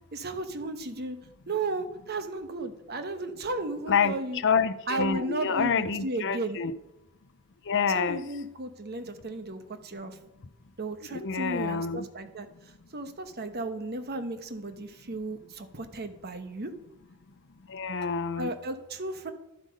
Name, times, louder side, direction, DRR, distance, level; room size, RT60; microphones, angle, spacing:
voice 1, 0.1-1.2 1.5-4.4 4.9-6.6 7.9-10.2 10.8-12.5 12.9-16.7 18.4-19.3, right 2 dB, 50° right, 1.1 m, -34 dB
voice 2, 3.9-6.7 7.7-8.2 11.1-12.0 17.7-18.5, left 6 dB, 60° left, 0.7 m, -27 dB
11.5 x 7.8 x 5.2 m
head